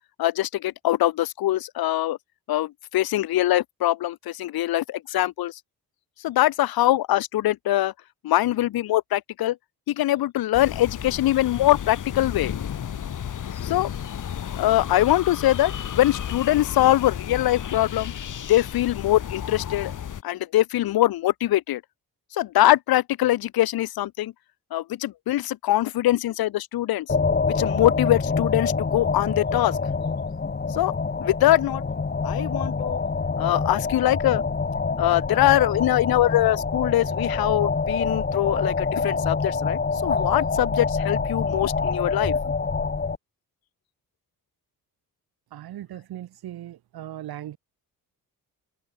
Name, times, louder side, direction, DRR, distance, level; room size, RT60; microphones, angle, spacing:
voice 1, 0.2-2.2 2.5-5.6 6.2-7.9 8.2-9.6 9.9-12.5 13.6-13.9 14.6-18.1 18.5-20.0 20.2-21.8 22.3-24.3 24.7-27.1 27.5-29.8 30.7-30.9 31.2-31.8 32.2-33.0 33.4-34.4 35.0-42.4, left 14 dB, 75° left, 0.9 m, -23 dB
sound 1, 10.5-20.2, left 9 dB, 55° left, 3.2 m, -33 dB
sound 2, 27.1-43.2, left 4 dB, 25° left, 4.0 m, -26 dB
voice 2, 45.5-47.6, right 12 dB, 85° right, 2.6 m, -38 dB
cardioid pair, 120°, 37 cm